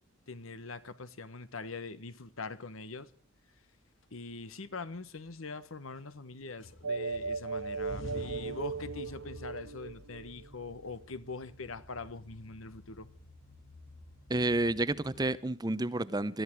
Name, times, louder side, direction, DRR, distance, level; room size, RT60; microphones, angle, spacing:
voice 1, 0.3-3.1 4.1-13.1, left 3 dB, 80° left, 1.3 m, -43 dB
sound 1, 4.0-4.7 5.1-6.3 6.6-15.3, left 1 dB, 65° left, 2.3 m, -50 dB
sound 2, 6.8-10.7, right 4 dB, 80° right, 0.7 m, -37 dB
voice 2, 14.3-16.4, right 2 dB, 20° right, 0.7 m, -30 dB
22.0 x 13.5 x 4.7 m
head